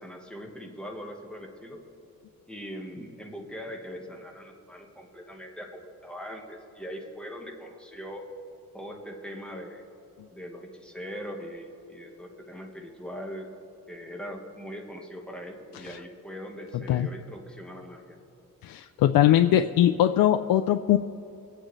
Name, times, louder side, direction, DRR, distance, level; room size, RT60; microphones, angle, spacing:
voice 1, 0.0-1.8 2.5-8.2 8.7-9.8 10.3-13.5 13.9-18.2, equal, 5° left, 1 dB, 1.3 m, -41 dB
voice 2, 18.6-21.0, left 11 dB, 85° left, 7 dB, 0.5 m, -21 dB
24.0 x 8.7 x 3.2 m, 2.8 s
cardioid pair, 130°, 34 cm